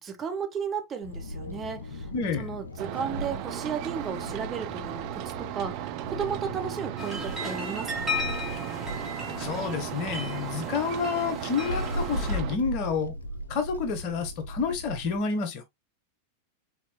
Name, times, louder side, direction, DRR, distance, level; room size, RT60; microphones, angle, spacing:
voice 1, 0.0-2.1 2.4-8.2, right 6 dB, 25° right, 1.1 m, -34 dB
Wind, 1.0-15.2, left 1 dB, 70° left, 0.7 m, -38 dB
voice 2, 2.1-2.5 9.4-13.1 13.5-15.6, left 5 dB, 40° left, 1.1 m, -29 dB
sound 1, 2.8-12.6, right 13 dB, 45° right, 0.5 m, -36 dB
sound 2, 7.0-12.4, left 3 dB, 5° right, 3.2 m, -36 dB
4.8 x 4.3 x 2.2 m
figure-of-eight pair, 90°, 0 cm